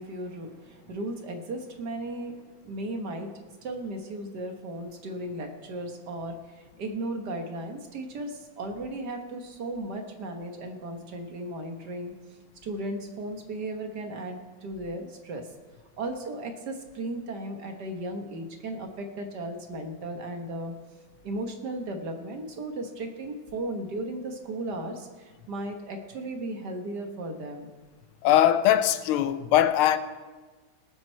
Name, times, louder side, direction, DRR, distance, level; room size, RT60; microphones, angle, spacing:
voice 1, 0.0-3.3 3.6-12.1 12.6-15.5 16.0-20.7 21.2-27.7, right 1 dB, 55° right, 1.6 m, -36 dB
voice 2, 28.2-30.0, left 11 dB, 85° left, 1.5 m, -21 dB
18.5 x 7.6 x 4.4 m
omnidirectional pair, 2.3 m